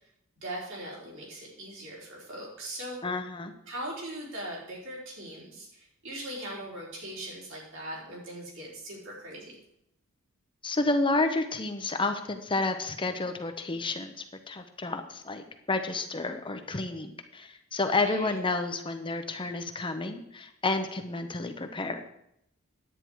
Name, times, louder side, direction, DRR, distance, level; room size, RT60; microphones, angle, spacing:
voice 1, 0.4-3.0 3.7-9.6 18.1-18.4, right 1 dB, 65° right, -4 dB, 4.2 m, -40 dB
voice 2, 3.0-3.5 10.6-22.0, left 3 dB, 25° left, 7 dB, 0.7 m, -30 dB
10.0 x 8.9 x 4.6 m, 0.77 s
head